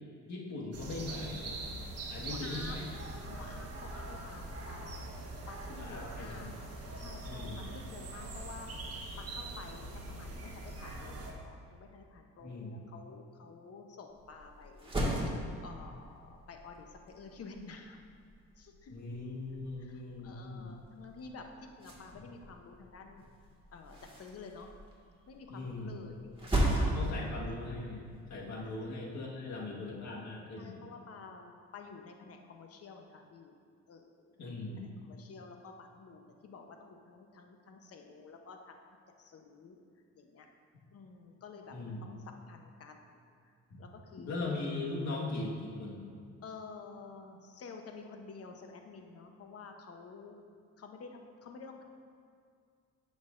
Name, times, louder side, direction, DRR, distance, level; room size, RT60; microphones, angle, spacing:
voice 1, 0.3-1.6 2.0-2.9 3.2-3.4 5.8-6.5 7.2-7.7 12.4-12.8 18.9-20.7 25.5-26.0 26.8-30.8 34.4-34.9 41.7-42.0 43.7-43.8 44.2-46.1, left 2 dB, 65° left, -3 dB, 1.6 m, -40 dB
sound 1, 0.7-11.3, right 2 dB, 55° right, 1.2 m, -43 dB
voice 2, 2.3-2.7 3.4-5.0 5.5-6.5 7.0-14.9 15.6-18.0 18.6-19.0 19.8-23.3 23.7-24.7 25.3-27.2 28.6-28.7 30.6-33.6 33.9-34.6 35.0-38.8 39.2-39.8 40.2-40.5 40.9-44.4 46.4-50.4 50.8-51.8, left 4 dB, 50° left, 4 dB, 0.9 m, -50 dB
sound 2, 14.1-28.9, right 1 dB, 20° right, 1.8 m, -38 dB
9.7 x 6.3 x 2.5 m, 2.2 s
cardioid pair, 90°, 30 cm